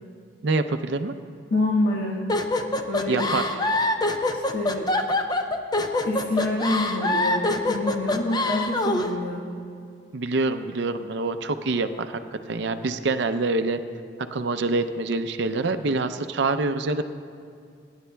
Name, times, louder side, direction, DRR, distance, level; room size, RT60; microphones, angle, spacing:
voice 1, 0.4-1.1 3.1-3.4 10.1-12.2 12.5-13.8 14.2-17.0, right 3 dB, 65° right, 9 dB, 0.5 m, -25 dB
voice 2, 1.5-2.2 2.9-3.3 4.3-4.9 6.0-9.5, left 2 dB, 70° left, -3 dB, 1.3 m, -26 dB
sound 1, 2.3-9.1, left 2 dB, 20° left, 0.5 m, -24 dB
25.5 x 10.5 x 2.2 m, 2.4 s
head